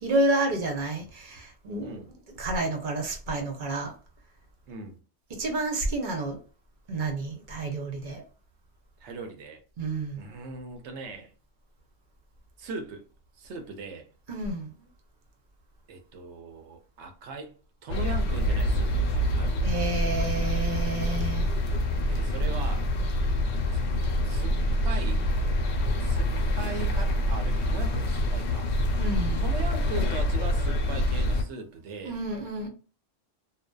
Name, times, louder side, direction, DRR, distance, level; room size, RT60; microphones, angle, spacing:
voice 1, 0.0-2.0 2.4-3.9 5.4-6.4 6.9-8.2 9.8-10.2 14.3-14.7 19.6-21.5 29.0-29.4 32.0-32.7, right 2 dB, 50° right, 0.8 m, -29 dB
voice 2, 1.8-2.1 4.7-5.0 9.0-9.6 10.2-11.3 12.6-13.1 13.4-14.1 15.9-17.6 17.8-19.8 22.1-22.9 23.5-25.3 26.0-28.7 29.4-32.2, right 3 dB, 90° right, 1.0 m, -39 dB
sound 1, 17.9-31.4, left 1 dB, 80° left, 0.9 m, -26 dB
2.6 x 2.1 x 2.2 m
omnidirectional pair, 1.1 m